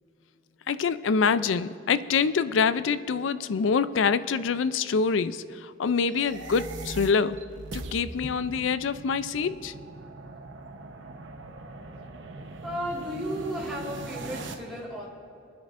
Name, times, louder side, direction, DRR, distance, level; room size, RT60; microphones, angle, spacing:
voice 1, 0.7-7.4 7.7-9.7, left 5 dB, 80° left, 14 dB, 0.4 m, -25 dB
sound 1, 6.0-14.5, right 2 dB, 75° right, 0.9 m, -41 dB
voice 2, 12.6-15.1, equal, ahead, -7 dB, 3.7 m, -34 dB
27.5 x 9.5 x 2.5 m, 2.5 s
head